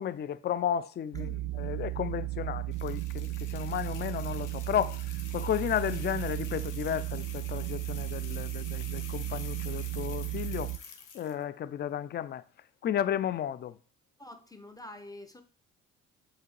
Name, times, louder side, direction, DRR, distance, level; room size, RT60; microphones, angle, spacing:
voice 1, 0.0-10.8 11.1-12.4 12.8-13.8, left 10 dB, 30° left, 0.4 m, -33 dB
sound 1, 1.1-10.8, right 18 dB, 55° right, 0.5 m, -35 dB
sound 2, 2.7-11.4, left 6 dB, 55° left, 1.0 m, -48 dB
voice 2, 14.2-15.4, left 2 dB, 10° left, 1.0 m, -46 dB
6.7 x 3.0 x 4.6 m
figure-of-eight pair, 45°, 37 cm